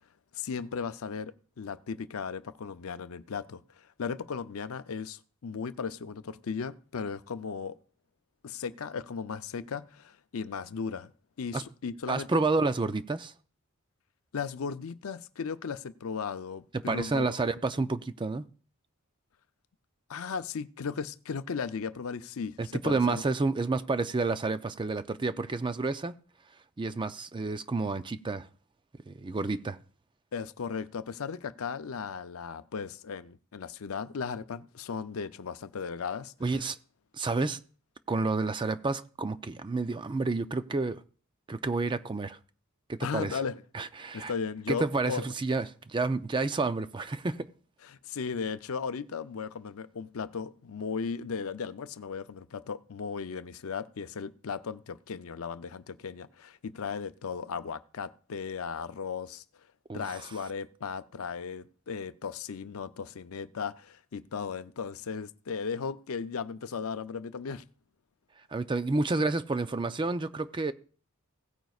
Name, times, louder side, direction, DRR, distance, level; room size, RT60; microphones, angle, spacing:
voice 1, 0.3-7.8 8.4-11.1 11.4-12.4 14.3-17.4 20.1-22.6 22.8-23.2 30.3-36.6 43.0-43.6 44.1-45.3 47.8-59.4 59.9-67.6, left 5 dB, 70° left, 0.5 m, -36 dB
voice 2, 12.1-13.3 16.7-18.4 22.6-26.1 26.8-28.5 29.1-29.8 36.4-36.8 37.1-37.6 38.1-41.0 41.5-42.4 42.9-43.4 43.7-44.3 44.7-47.5 59.9-60.0 68.5-70.7, right 3 dB, 20° right, 0.4 m, -30 dB
16.5 x 9.1 x 2.4 m
head